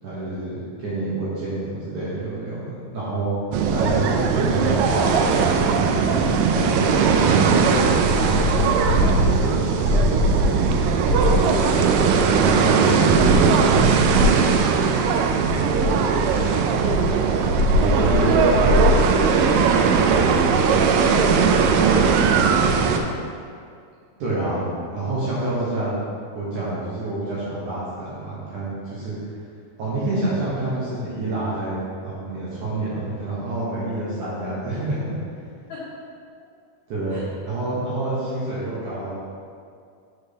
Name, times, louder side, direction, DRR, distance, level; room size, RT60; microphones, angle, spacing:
voice 1, 0.0-3.3 3.7-4.0 4.4-6.8 7.1-7.7 8.0-8.9 9.4-10.2 11.1-14.1 15.5-16.5 17.7-19.5 24.2-24.7 24.9-25.9 26.3-29.2 29.8-31.8 32.0-35.2 36.9-39.2, right 2 dB, 65° right, -9 dB, 2.1 m, -28 dB
sound 1, 3.5-23.0, right 4 dB, 90° right, 2.1 m, -18 dB
voice 2, 17.8-18.4 21.1-23.2 29.9-30.1 35.7-35.9 37.1-37.3, left 3 dB, 70° left, -9 dB, 1.7 m, -33 dB
6.7 x 4.4 x 5.0 m, 2.3 s
omnidirectional pair, 4.9 m